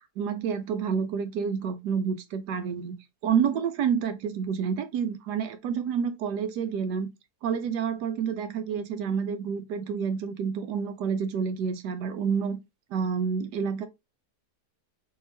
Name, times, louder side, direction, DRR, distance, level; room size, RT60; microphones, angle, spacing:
voice 1, 0.2-2.9 3.2-7.1 7.4-12.6 12.9-13.9, right 7 dB, 80° right, 1.3 m, -29 dB
3.7 x 3.6 x 2.6 m
omnidirectional pair, 1.7 m